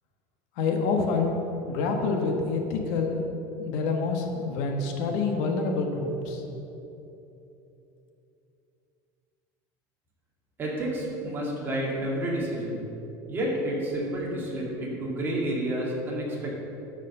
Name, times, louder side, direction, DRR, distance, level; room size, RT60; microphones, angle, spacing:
voice 1, 0.6-1.3 1.7-3.2 3.6-6.4, left 4 dB, 65° left, 3 dB, 1.3 m, -27 dB
voice 2, 10.6-12.9 13.3-16.6, right 1 dB, 20° right, -4 dB, 2.3 m, -30 dB
12.5 x 5.2 x 6.6 m, 3.0 s
cardioid pair, 165°, 10 cm